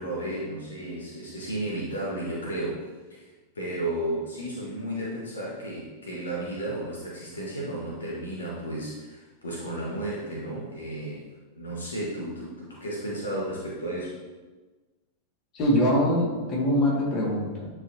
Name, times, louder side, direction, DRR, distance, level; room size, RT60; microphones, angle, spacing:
voice 1, 0.0-3.2 3.5-11.3 11.5-14.2, right 1 dB, 70° left, -4 dB, 1.4 m, -33 dB
voice 2, 15.5-17.7, equal, 35° left, -3 dB, 2.1 m, -23 dB
9.6 x 4.7 x 2.9 m, 1.3 s
figure-of-eight pair, 90°, 0 cm